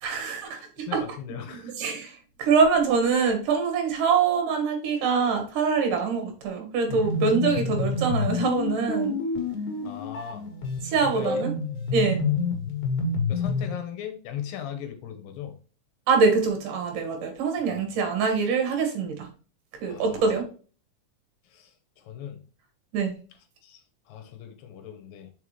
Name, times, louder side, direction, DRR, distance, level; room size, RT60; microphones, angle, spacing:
voice 1, 0.0-1.0 1.8-9.2 10.8-11.5 11.9-12.2 16.1-19.3 19.8-20.4 22.9-23.1, right 5 dB, 70° right, 4 dB, 3.0 m, -24 dB
voice 2, 0.9-1.7 9.8-10.5 11.0-11.4 13.3-15.6 17.7-17.8 19.9-20.3 21.4-22.5 23.6-23.8 24.1-25.3, left 9 dB, 85° left, 7 dB, 2.9 m, -38 dB
sound 1, 6.9-13.7, left 4 dB, 65° left, 3.2 m, -28 dB
5.8 x 5.6 x 3.2 m, 0.38 s
omnidirectional pair, 3.9 m